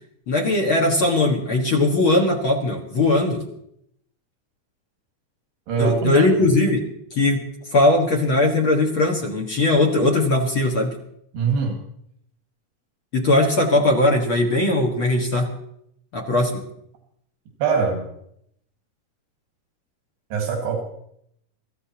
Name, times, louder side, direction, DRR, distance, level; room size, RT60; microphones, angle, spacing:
voice 1, 0.3-3.4 5.8-6.8 7.1-7.4 7.7-10.9 13.1-15.5 16.1-16.6, left 2 dB, 55° left, 2 dB, 1.5 m, -19 dB
voice 2, 5.7-6.3 11.3-11.8 17.6-18.1 20.3-20.8, right 5 dB, 85° right, 1 dB, 3.9 m, -22 dB
26.0 x 14.0 x 2.9 m, 0.73 s
omnidirectional pair, 4.5 m